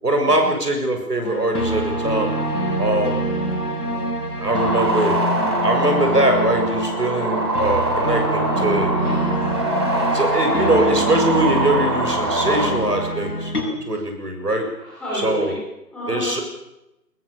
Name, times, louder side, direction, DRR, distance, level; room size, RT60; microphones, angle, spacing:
voice 1, 0.0-2.3 2.8-3.3 4.4-5.2 5.6-8.9 10.1-13.5 13.9-14.7 15.2-15.5 16.1-16.4, right 1 dB, 70° right, 4 dB, 6.9 m, -22 dB
sound 1, 1.2-13.6, right 1 dB, 60° left, 7.1 m, -25 dB
sound 2, 4.5-12.7, right 2 dB, 15° right, 2.6 m, -24 dB
voice 2, 8.9-9.5 13.8-14.0 14.8-15.6 15.9-16.3, left 1 dB, ahead, -10 dB, 4.5 m, -30 dB
21.5 x 21.0 x 7.1 m, 0.89 s
figure-of-eight pair, 165°, 50 cm